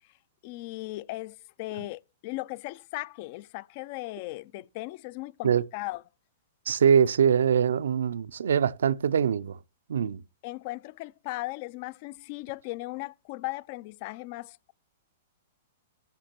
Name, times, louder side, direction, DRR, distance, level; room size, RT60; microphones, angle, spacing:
voice 1, 0.4-6.0 10.4-14.7, left 20 dB, 50° left, 0.4 m, -37 dB
voice 2, 6.7-9.6 9.9-10.2, right 7 dB, 75° right, 0.4 m, -23 dB
14.5 x 5.7 x 2.9 m
hypercardioid pair, 120°, 0 cm